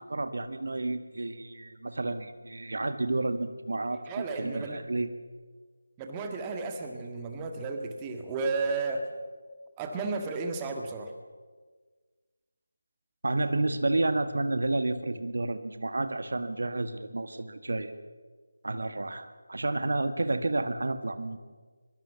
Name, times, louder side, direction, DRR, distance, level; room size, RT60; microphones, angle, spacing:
voice 1, 0.0-5.1 13.2-17.9 18.6-21.4, right 2 dB, 55° right, 10 dB, 1.8 m, -30 dB
voice 2, 4.1-4.8 6.0-9.1 9.8-11.1, right 4 dB, 15° right, 4 dB, 1.8 m, -33 dB
23.5 x 23.5 x 7.0 m, 1.4 s
figure-of-eight pair, 160°, 0 cm